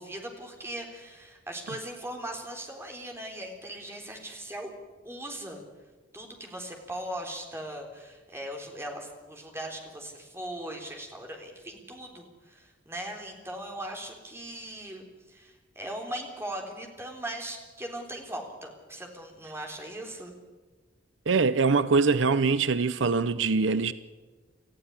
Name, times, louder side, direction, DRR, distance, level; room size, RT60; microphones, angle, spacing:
voice 1, 0.0-4.7 5.0-5.6 6.1-20.3, right 1 dB, 15° right, 3.6 m, -39 dB
voice 2, 21.3-23.9, right 4 dB, 75° right, 0.7 m, -23 dB
19.0 x 14.5 x 9.8 m
head